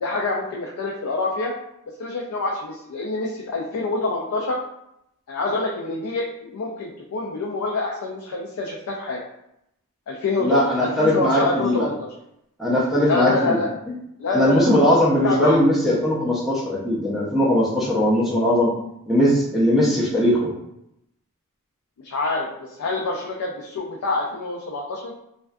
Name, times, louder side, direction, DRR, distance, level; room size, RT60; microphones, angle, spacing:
voice 1, 0.0-1.5 2.0-4.6 5.3-9.2 10.1-12.1 13.1-13.8 14.2-14.7 15.2-15.6 22.0-25.1, left 3 dB, 70° left, -2 dB, 0.4 m, -26 dB
voice 2, 10.4-11.9 12.6-13.6 14.3-18.7 19.1-20.5, left 1 dB, ahead, -6 dB, 0.4 m, -19 dB
2.5 x 2.2 x 2.2 m, 0.80 s
head